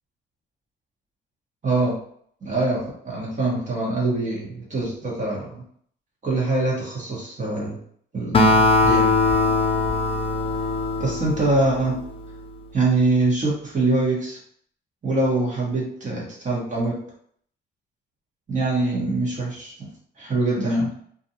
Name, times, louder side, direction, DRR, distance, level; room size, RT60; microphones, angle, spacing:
voice 1, 1.6-2.0 2.4-5.6 6.2-7.8 8.1-9.1 11.0-11.9 12.7-14.4 15.0-16.9 18.5-19.9 20.2-20.9, right 2 dB, 40° right, -4 dB, 1.2 m, -24 dB
Acoustic guitar, 8.3-11.9, left 2 dB, 30° left, 0.5 m, -20 dB
2.5 x 2.3 x 2.8 m, 0.62 s
cardioid pair, 90°, 20 cm